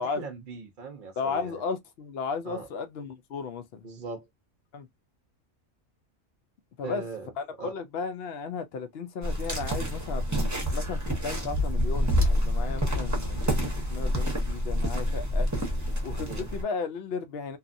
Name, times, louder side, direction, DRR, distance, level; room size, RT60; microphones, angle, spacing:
voice 1, 0.0-1.6 2.4-2.7 3.8-4.3 6.8-7.3 7.6-7.7 16.3-16.5, right 4 dB, 50° right, 0.7 m, -39 dB
voice 2, 1.2-3.8 4.7-4.9 6.8-7.0 7.4-15.5 16.0-17.6, left 5 dB, 60° left, 0.7 m, -35 dB
sound 1, 9.2-16.6, equal, 15° right, 0.7 m, -27 dB
2.7 x 2.3 x 2.5 m
omnidirectional pair, 1.4 m